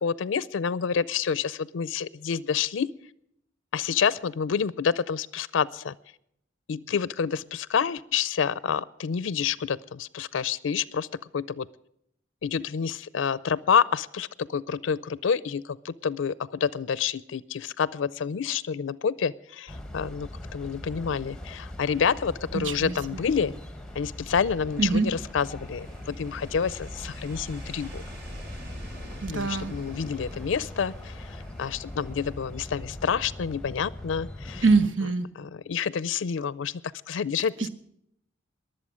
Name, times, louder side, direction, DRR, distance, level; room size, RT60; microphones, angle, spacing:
voice 1, 0.0-2.9 3.7-5.9 6.7-11.1 11.3-11.7 12.4-23.5 24.0-28.0 29.3-31.3 31.6-34.6 35.4-36.8 37.1-37.7, left 6 dB, 85° left, 19 dB, 0.4 m, -28 dB
sound 1, 19.7-34.9, left 1 dB, 5° left, 1.0 m, -41 dB
voice 2, 22.5-23.2 24.8-25.1 29.2-29.7 34.6-35.3 37.6-37.7, right 4 dB, 85° right, 10 dB, 1.2 m, -24 dB
sound 2, 23.5-33.8 34.1-34.2, equal, 55° right, 2.9 m, -45 dB
22.0 x 7.8 x 6.2 m, 0.73 s
head